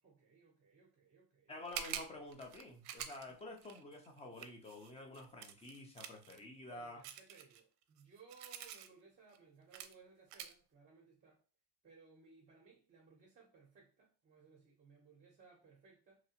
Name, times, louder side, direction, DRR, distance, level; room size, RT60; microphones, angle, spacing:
voice 1, 0.0-1.6 6.7-11.4 11.8-16.2, right 4 dB, 20° right, 0.8 m, -63 dB
voice 2, 1.5-7.0, left 2 dB, 15° left, 0.5 m, -50 dB
sound 1, 1.6-6.4 7.0-8.9 9.3-9.4 9.7-9.9 10.3-10.5, right 10 dB, 65° right, 0.5 m, -47 dB
2.9 x 2.2 x 2.8 m
supercardioid pair, 120°, 46 cm